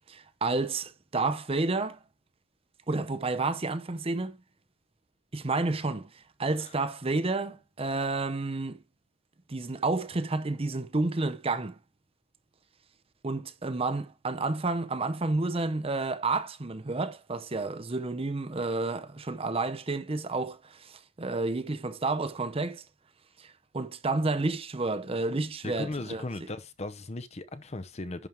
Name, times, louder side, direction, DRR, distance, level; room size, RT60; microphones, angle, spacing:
voice 1, 0.1-2.0 2.9-4.4 5.3-8.8 9.5-11.8 13.2-22.8 23.4-26.2, right 3 dB, 25° right, 0.6 m, -30 dB
voice 2, 25.6-28.3, left 2 dB, 30° left, 0.7 m, -37 dB
11.0 x 4.5 x 3.4 m
head